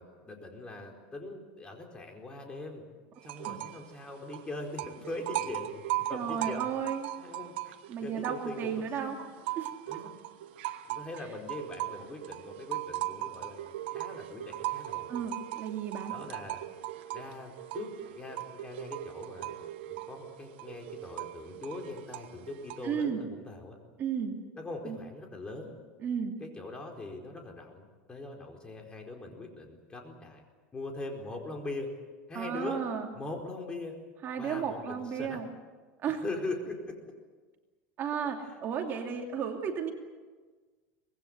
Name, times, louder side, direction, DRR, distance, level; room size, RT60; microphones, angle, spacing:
voice 1, 0.0-2.8 3.2-6.7 7.2-7.7 8.0-9.2 9.9-10.1 10.9-15.3 16.1-16.6 17.1-23.8 24.6-25.8 26.4-30.4 30.7-31.9 32.3-32.8 33.1-34.0 34.4-35.4 36.0-37.0, left 2 dB, 15° left, 2 dB, 4.6 m, -41 dB
sound 1, 3.2-3.9 4.1-8.8 9.2-23.0, right 15 dB, 85° right, 1.2 m, -38 dB
voice 2, 6.1-7.1 7.9-9.2 9.6-10.0 15.1-16.2 22.8-23.2 24.0-24.4 24.8-25.0 26.0-26.3 32.3-33.1 34.2-35.5 36.0-36.2 38.0-39.9, right 7 dB, 35° right, 3 dB, 2.7 m, -34 dB
24.5 x 20.5 x 8.1 m, 1.4 s
supercardioid pair, 140°, 6 cm